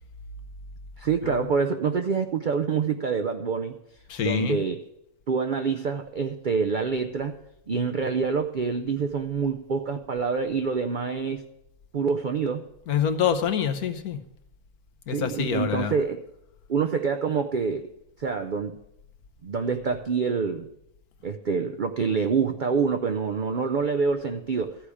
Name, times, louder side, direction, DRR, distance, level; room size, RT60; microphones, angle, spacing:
voice 1, 1.0-3.8 4.2-4.8 5.3-7.4 7.7-11.4 11.9-12.6 15.1-16.2 16.7-17.9 18.2-18.7 19.4-20.7 21.2-24.8, right 5 dB, 70° right, 7 dB, 0.4 m, -26 dB
voice 2, 4.1-4.6 12.9-14.2 15.1-15.9, left 8 dB, 75° left, 8 dB, 1.4 m, -26 dB
14.0 x 4.9 x 8.3 m, 0.83 s
omnidirectional pair, 1.6 m